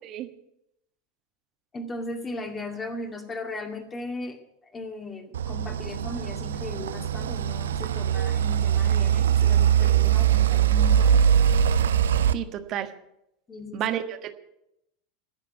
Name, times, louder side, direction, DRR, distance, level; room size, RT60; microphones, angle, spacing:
voice 1, 1.7-4.4 4.7-11.2 13.5-13.8, left 2 dB, 20° left, 4 dB, 2.3 m, -37 dB
sound 1, 5.3-12.3, right 9 dB, 65° right, 0.5 m, -22 dB
voice 2, 12.3-12.9 13.7-14.3, right 11 dB, 40° right, 8 dB, 1.4 m, -31 dB
15.5 x 6.9 x 9.1 m, 0.82 s
figure-of-eight pair, 85°, 0 cm